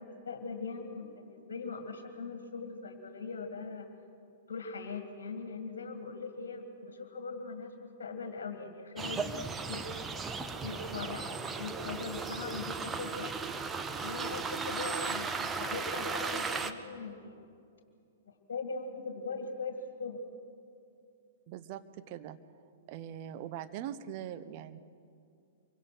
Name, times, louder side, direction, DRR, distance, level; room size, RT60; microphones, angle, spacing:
voice 1, 0.0-3.9 4.5-10.0 10.5-13.3 14.0-17.4 18.3-20.3, left 4 dB, 55° left, 6 dB, 2.0 m, -41 dB
sound 1, 9.0-16.7, right 4 dB, 15° right, 1.0 m, -36 dB
voice 2, 21.5-22.4 22.9-24.8, right 10 dB, 40° right, 11 dB, 1.0 m, -42 dB
25.5 x 23.5 x 6.4 m, 2.5 s
figure-of-eight pair, 105°, 0 cm